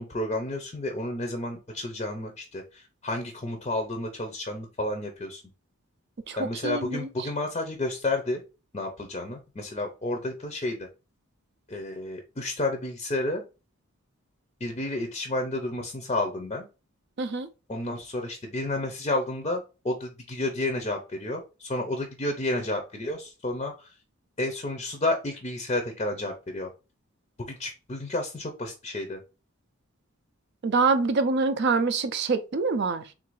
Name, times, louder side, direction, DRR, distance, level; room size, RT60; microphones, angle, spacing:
voice 1, 0.0-5.4 6.4-8.4 8.7-10.9 11.7-13.4 14.6-16.7 17.7-23.9 24.4-26.7 27.5-29.2, left 2 dB, 30° left, 0.5 m, -31 dB
voice 2, 6.3-7.1 17.2-17.5 30.6-33.1, right 4 dB, 50° right, 0.4 m, -25 dB
3.7 x 2.5 x 4.6 m
head